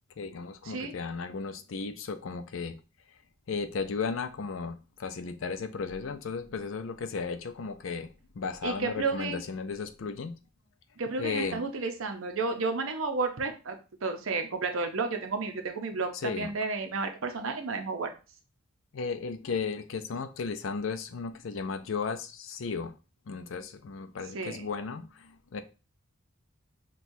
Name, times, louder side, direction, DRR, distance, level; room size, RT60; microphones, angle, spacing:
voice 1, 0.2-2.8 3.5-10.4 11.2-11.6 16.1-16.5 18.9-22.9 23.3-25.6, left 5 dB, 70° left, 0.5 m, -35 dB
voice 2, 8.6-9.4 11.0-18.1 24.3-24.7, right 4 dB, 80° right, 0.7 m, -32 dB
6.0 x 2.3 x 2.7 m
head